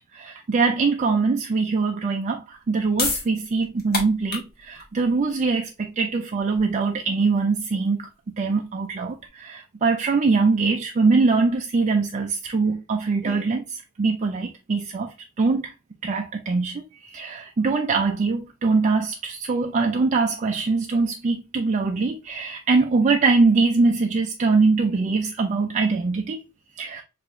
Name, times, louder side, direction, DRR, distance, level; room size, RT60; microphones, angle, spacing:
voice 1, 0.1-8.1 8.4-13.6 14.0-15.7 16.0-26.4 26.8-27.0, right 4 dB, 35° right, 0.3 m, -22 dB
sound 1, 2.5-9.3, left 3 dB, 45° left, 1.1 m, -33 dB
4.6 x 2.5 x 3.0 m
head